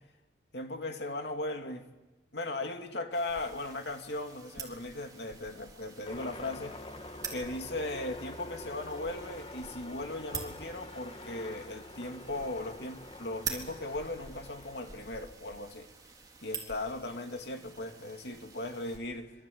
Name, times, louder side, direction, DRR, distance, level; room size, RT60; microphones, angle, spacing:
voice 1, 0.5-1.9 2.3-6.8 7.3-15.9 16.4-19.3, left 2 dB, 75° left, 2.5 m, -38 dB
sound 1, 3.1-19.0, right 5 dB, 20° right, 3.9 m, -46 dB
sound 2, 6.0-15.2, left 2 dB, 30° left, 1.4 m, -46 dB
26.0 x 25.0 x 8.6 m
head